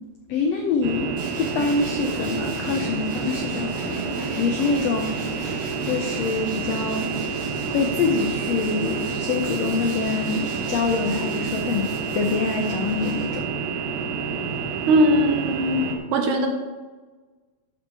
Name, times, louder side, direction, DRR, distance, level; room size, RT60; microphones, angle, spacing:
voice 1, 0.3-7.1 7.7-13.4, left 4 dB, 85° left, 4 dB, 1.4 m, -25 dB
sound 1, 0.8-16.0, right 5 dB, 85° right, 2.9 m, -29 dB
Tools, 1.2-13.7, right 1 dB, 20° right, 3.6 m, -41 dB
voice 2, 14.9-16.5, right 1 dB, 70° right, 3 dB, 2.3 m, -20 dB
12.0 x 6.1 x 4.7 m, 1.3 s
omnidirectional pair, 4.0 m